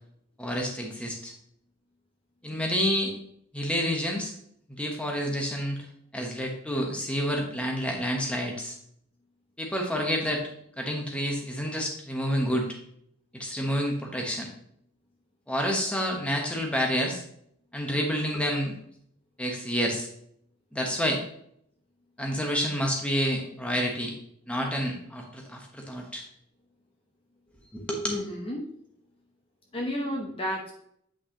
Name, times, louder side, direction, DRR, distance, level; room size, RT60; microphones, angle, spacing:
voice 1, 0.4-1.3 2.4-3.1 3.5-4.3 4.7-5.8 6.1-8.7 9.6-10.5 10.8-12.7 13.3-14.5 15.5-17.2 17.7-18.7 19.4-20.1 20.7-21.2 22.2-24.1 24.5-26.2 27.7-28.2, equal, 5° left, 1 dB, 1.0 m, -29 dB
voice 2, 28.1-28.7 29.7-30.7, left 1 dB, 25° left, -1 dB, 0.8 m, -32 dB
8.5 x 5.3 x 2.9 m, 0.69 s
head